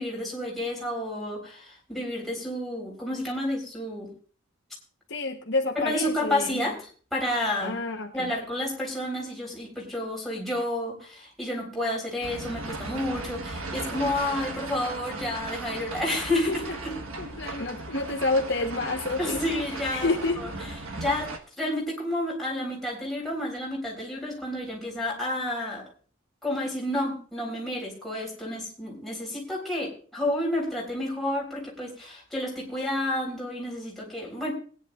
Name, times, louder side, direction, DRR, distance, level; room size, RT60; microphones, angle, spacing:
voice 1, 0.0-4.1 5.8-7.8 8.1-16.5 16.8-16.9 19.2-20.1 20.4-20.5 21.0-21.3 21.6-25.8 26.4-34.5, left 1 dB, ahead, -4 dB, 3.9 m, -30 dB
voice 2, 5.1-6.6 7.6-8.3 16.5-16.7 17.2-20.4, left 3 dB, 55° left, 3 dB, 1.0 m, -29 dB
sound 1, 12.2-21.4, right 2 dB, 85° right, 1.4 m, -36 dB
21.0 x 10.0 x 2.4 m, 0.42 s
head